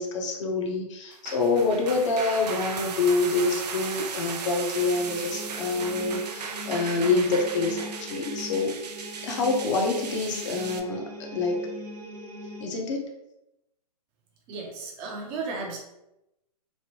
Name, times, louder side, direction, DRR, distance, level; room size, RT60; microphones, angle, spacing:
voice 1, 0.0-8.8 9.2-11.7 12.6-13.1, left 3 dB, 50° left, 2 dB, 0.6 m, -26 dB
sound 1, 1.1-10.8, right 5 dB, 80° right, 0.4 m, -36 dB
sound 2, 4.8-12.6, equal, 60° right, 0.9 m, -41 dB
voice 2, 14.5-15.8, right 4 dB, 25° right, 0 dB, 0.5 m, -34 dB
3.0 x 2.0 x 2.8 m, 0.89 s
hypercardioid pair, 130°, 21 cm